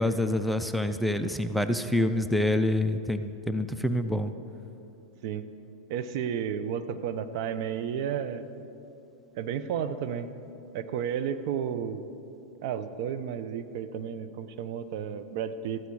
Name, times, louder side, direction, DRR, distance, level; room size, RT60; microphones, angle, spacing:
voice 1, 0.0-4.3, left 1 dB, ahead, 8 dB, 0.5 m, -27 dB
voice 2, 5.9-8.5 9.4-10.3 10.7-12.0 12.6-15.8, right 8 dB, 60° right, 12 dB, 0.9 m, -32 dB
14.0 x 12.0 x 6.3 m, 2.8 s
hypercardioid pair, 130°, 3 cm